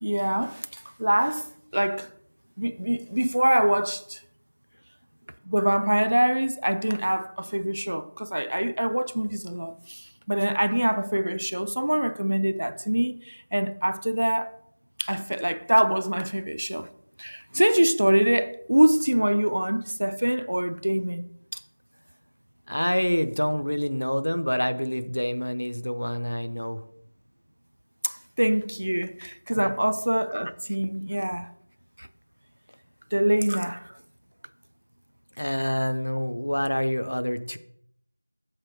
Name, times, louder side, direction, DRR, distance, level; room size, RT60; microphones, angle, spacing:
voice 1, 0.0-2.1 2.6-4.2 5.5-14.5 15.0-16.9 17.2-21.2 21.5-21.6 28.0-31.5 32.0-32.1 33.1-34.0, right 1 dB, 35° right, 0.4 m, -25 dB
voice 2, 22.7-26.8 29.6-29.7 35.4-37.6, equal, 50° left, 0.7 m, -27 dB
7.7 x 7.2 x 4.5 m
figure-of-eight pair, 180°, 0 cm